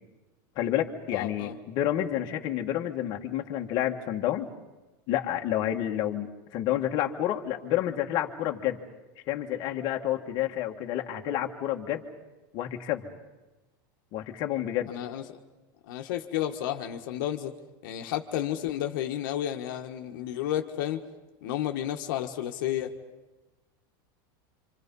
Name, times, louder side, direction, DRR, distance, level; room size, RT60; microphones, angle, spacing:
voice 1, 0.5-4.5 5.1-8.8 9.3-12.0 12.5-13.1 14.1-14.9, left 12 dB, 40° left, 2 dB, 1.7 m, -29 dB
voice 2, 1.1-1.6 14.9-15.4 15.9-17.5 17.8-21.0 21.4-22.9, left 11 dB, 65° left, 4 dB, 1.6 m, -32 dB
27.0 x 26.5 x 5.5 m, 1.1 s
supercardioid pair, 160°, 12 cm